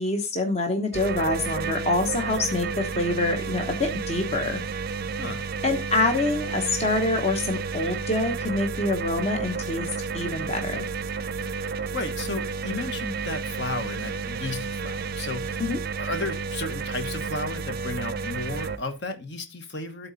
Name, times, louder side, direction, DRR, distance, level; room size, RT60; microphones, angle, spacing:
voice 1, 0.0-4.6 5.6-10.9 15.6-15.8, left 2 dB, 30° left, 0.9 m, -26 dB
sound 1, 0.9-18.8, right 5 dB, 50° right, 0.4 m, -31 dB
voice 2, 5.2-5.5 11.9-20.1, left 2 dB, 60° left, 1.3 m, -34 dB
12.0 x 4.1 x 4.0 m
head